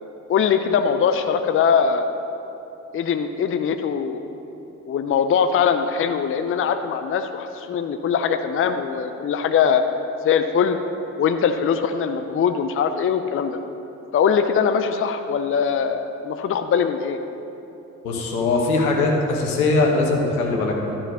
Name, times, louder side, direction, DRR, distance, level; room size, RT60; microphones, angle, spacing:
voice 1, 0.3-2.1 2.9-4.2 4.9-9.9 10.2-10.8 11.2-13.6 14.1-17.2, left 7 dB, 30° left, 8 dB, 0.6 m, -21 dB
voice 2, 18.0-20.9, left 3 dB, 80° left, 0 dB, 1.3 m, -21 dB
12.0 x 5.9 x 6.2 m, 3.0 s
figure-of-eight pair, 45°, 43 cm